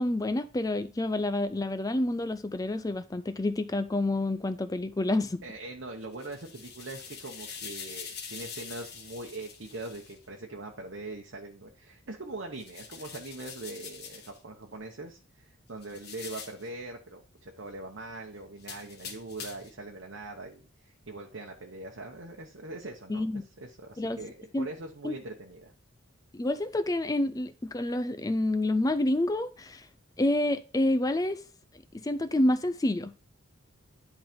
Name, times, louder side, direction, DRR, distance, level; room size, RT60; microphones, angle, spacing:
voice 1, 0.0-5.4 23.1-23.4 24.0-24.2 24.5-24.7 25.0-25.2 26.3-29.9 30.2-31.4 32.0-33.2, left 1 dB, 15° left, 0.4 m, -28 dB
voice 2, 5.4-25.7, right 2 dB, 60° right, 0.9 m, -42 dB
sound 1, 6.0-10.2 12.5-14.4 15.8-16.7 18.6-19.8, left 6 dB, 50° left, 1.5 m, -44 dB
10.5 x 4.0 x 5.1 m
head